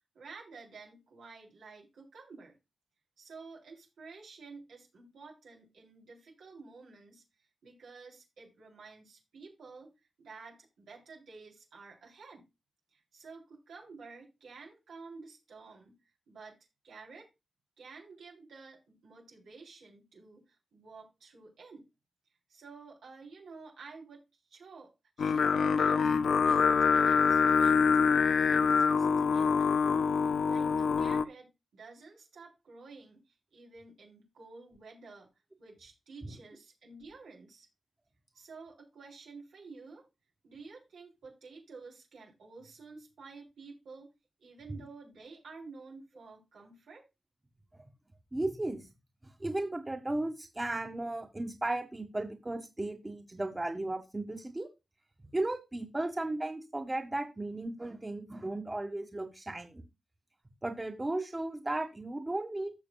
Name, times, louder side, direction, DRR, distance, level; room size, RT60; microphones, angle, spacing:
voice 1, 0.1-2.6 3.2-7.2 7.6-9.9 10.2-12.4 12.9-16.0 16.3-16.6 16.8-17.3 17.8-21.8 22.5-24.2 24.5-24.9 25.2-26.1 26.4-29.7 30.2-35.3 35.6-37.7 38.3-40.1 40.4-44.1 44.4-47.0, right 4 dB, 90° right, -2 dB, 3.7 m, -51 dB
Singing, 25.2-31.2, left 6 dB, 75° left, 0.5 m, -25 dB
voice 2, 48.3-48.8 49.4-54.7 55.3-59.8 60.6-62.7, right 2 dB, 20° right, 5 dB, 1.7 m, -35 dB
15.0 x 6.4 x 2.4 m, 0.24 s
cardioid pair, 65°, 0 cm